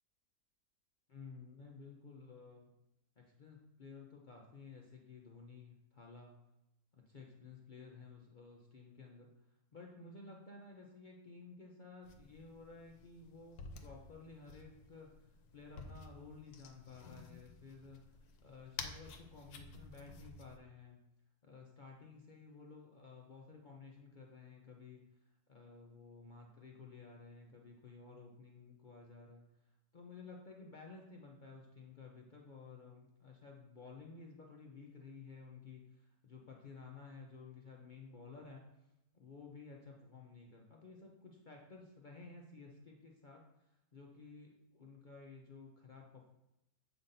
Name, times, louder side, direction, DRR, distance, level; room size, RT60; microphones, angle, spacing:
voice 1, 1.1-2.7 3.2-6.4 6.9-9.3 9.7-15.1 15.5-18.0 18.4-21.0 21.4-25.0 25.5-29.5 29.9-38.6 39.1-46.3, left 4 dB, 50° left, 0 dB, 0.5 m, -54 dB
sound 1, 12.0-20.6, left 5 dB, 90° left, 1.2 m, -52 dB
7.9 x 5.6 x 2.6 m, 0.90 s
omnidirectional pair, 1.6 m